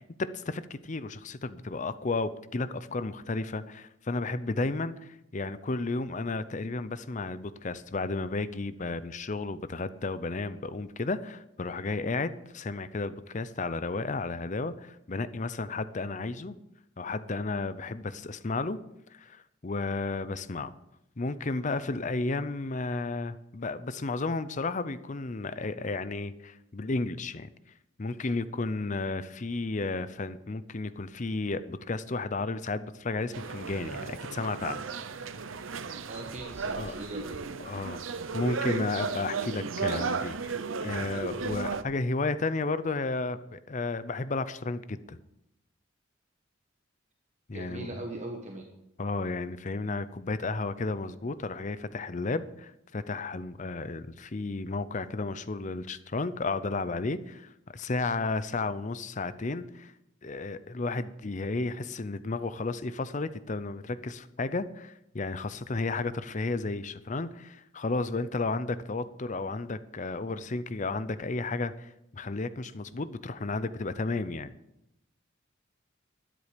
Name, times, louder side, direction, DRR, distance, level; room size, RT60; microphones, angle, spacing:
voice 1, 0.0-16.6 17.0-18.8 19.1-20.7 21.2-27.5 28.0-34.9 36.8-37.0 37.6-38.0 38.3-40.5 40.8-45.2 47.5-47.9 49.0-59.9 60.2-74.5, left 3 dB, 40° left, 14 dB, 0.6 m, -33 dB
sound 1, 33.3-41.8, right 5 dB, 85° right, 0.7 m, -34 dB
voice 2, 36.1-37.5 47.5-48.6, right 2 dB, 35° right, 1 dB, 1.2 m, -40 dB
12.5 x 10.0 x 5.1 m, 0.86 s
head